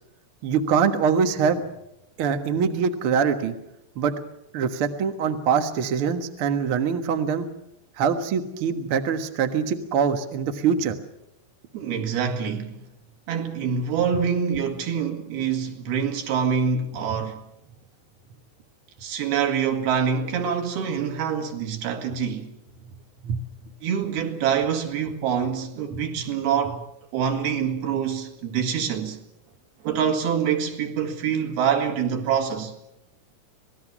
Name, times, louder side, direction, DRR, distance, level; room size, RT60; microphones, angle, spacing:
voice 1, 0.4-1.6 2.2-3.5 3.9-4.1 4.5-7.5 8.0-11.0 17.1-17.2 23.2-23.5, right 6 dB, 85° right, 1.2 m, -23 dB
voice 2, 11.7-12.8 13.3-17.4 19.0-22.5 23.8-26.8 27.1-29.2 29.8-32.7, right 7 dB, 65° right, 3.6 m, -25 dB
26.5 x 19.0 x 6.1 m
omnidirectional pair, 4.9 m